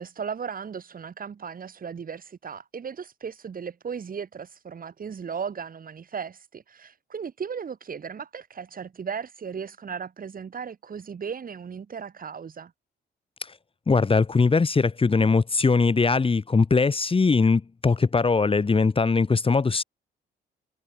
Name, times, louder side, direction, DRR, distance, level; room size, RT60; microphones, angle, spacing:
voice 1, 0.0-12.7, right 6 dB, 45° right, 6.9 m, -36 dB
voice 2, 13.9-19.8, left 4 dB, 25° left, 2.0 m, -21 dB
cardioid pair, 90°, 20 cm